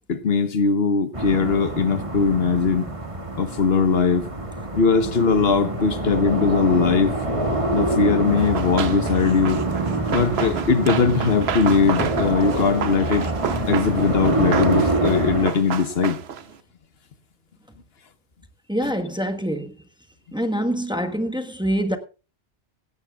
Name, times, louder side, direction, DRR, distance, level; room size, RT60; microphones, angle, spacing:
voice 1, 0.1-2.9 3.3-4.3 4.7-7.1 7.7-9.6 10.1-13.3 13.7-16.2, left 5 dB, 75° left, 1.3 m, -20 dB
sound 1, 1.1-15.5, right 2 dB, 30° right, 2.0 m, -26 dB
Run, 8.4-16.5, right 8 dB, 85° right, 1.1 m, -30 dB
voice 2, 18.7-19.7 20.3-22.0, equal, 5° right, 1.3 m, -25 dB
17.5 x 16.5 x 2.4 m
omnidirectional pair, 1.0 m